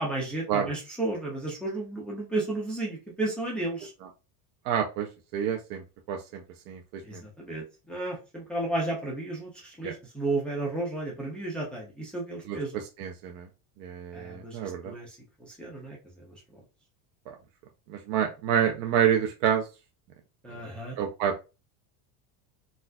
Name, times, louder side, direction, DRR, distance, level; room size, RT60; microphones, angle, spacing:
voice 1, 0.0-3.9 7.0-12.8 14.1-16.0 16.2-16.4 20.4-21.0, right 2 dB, ahead, -4 dB, 0.6 m, -33 dB
voice 2, 4.6-5.1 5.3-5.8 6.1-7.2 9.8-9.9 12.5-13.5 13.8-14.9 17.3-17.4 17.9-19.6 21.0-21.3, right 9 dB, 50° right, 2 dB, 0.6 m, -28 dB
4.0 x 2.5 x 2.2 m, 0.29 s
cardioid pair, 160°, 47 cm